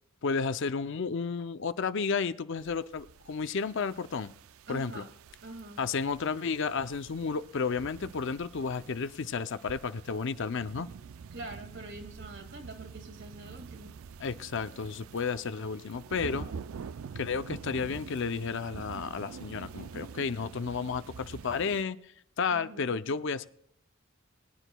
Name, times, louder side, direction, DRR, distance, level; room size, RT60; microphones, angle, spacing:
voice 1, 0.2-4.3 4.7-5.1 5.8-10.9 14.2-16.5 17.2-22.1 22.4-23.5, left 5 dB, 60° left, 0.5 m, -32 dB
sound 1, 2.6-21.8, right 6 dB, 75° right, 0.4 m, -46 dB
voice 2, 4.7-5.1 5.4-5.8 11.3-14.0 16.2-16.6 22.5-23.2, right 2 dB, 55° right, 2.0 m, -45 dB
22.0 x 10.0 x 2.2 m
head